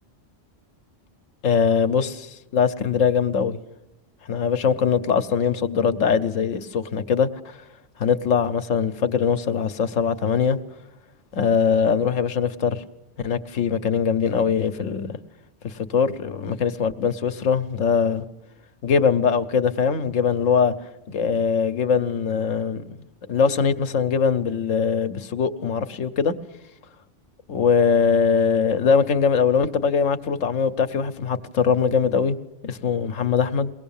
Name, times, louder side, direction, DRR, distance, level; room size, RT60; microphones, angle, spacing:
voice 1, 1.4-3.6 4.3-7.6 8.0-10.6 11.3-12.8 13.2-15.2 15.6-18.2 18.8-20.7 21.1-23.0 23.3-26.3 27.5-32.4 32.6-33.7, left 6 dB, 85° left, 1.3 m, -22 dB
22.5 x 18.0 x 7.2 m
omnidirectional pair, 1.3 m